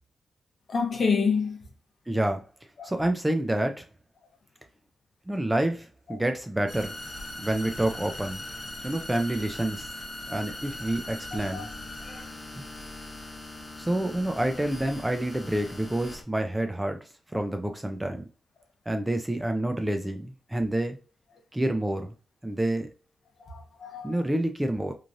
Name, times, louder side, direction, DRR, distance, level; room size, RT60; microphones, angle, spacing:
voice 1, 0.7-1.6 2.8-2.9 6.1-6.2 11.5-11.7 12.0-12.3 23.4-24.2, left 5 dB, 50° left, 0.7 m, -28 dB
voice 2, 2.1-2.4 2.8-3.8 5.3-6.9 7.4-8.4 8.8-9.9 10.3-11.7 12.6-12.7 13.8-17.0 17.3-18.2 18.9-21.0 21.5-22.1 22.4-22.9 24.0-24.9, right 1 dB, 10° right, 0.4 m, -28 dB
sound 1, 6.7-16.2, left 2 dB, 20° left, 0.8 m, -40 dB
3.1 x 2.5 x 2.5 m
wide cardioid pair, 125°, 0 cm